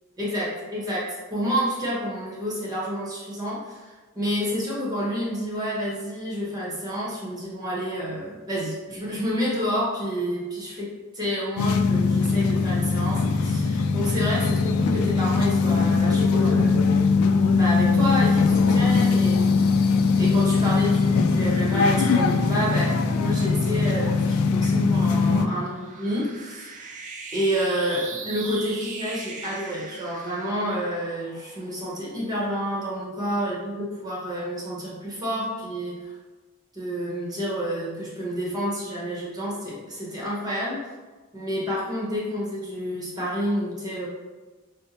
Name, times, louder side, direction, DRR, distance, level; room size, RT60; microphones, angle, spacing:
voice 1, 0.2-16.9 17.6-26.9 27.3-36.1 36.7-40.8 41.3-44.1, equal, 20° right, -5 dB, 0.9 m, -29 dB
sound 1, 11.6-25.5, left 4 dB, 85° left, 0.3 m, -21 dB
sound 2, 24.3-32.6, right 4 dB, 35° right, 0.4 m, -40 dB
5.1 x 2.1 x 2.8 m, 1.3 s
head